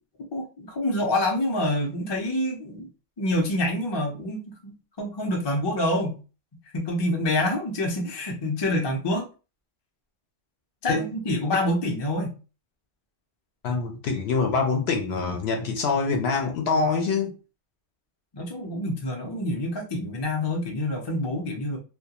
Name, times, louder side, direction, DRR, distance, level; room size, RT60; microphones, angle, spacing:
voice 1, 0.3-2.9 3.2-6.2 6.7-9.3 10.8-12.4 14.7-14.8 18.3-21.8, left 1 dB, 30° left, 0.5 m, -27 dB
voice 2, 13.6-17.3, left 4 dB, 65° left, 0.8 m, -25 dB
2.3 x 2.2 x 2.8 m
omnidirectional pair, 1.2 m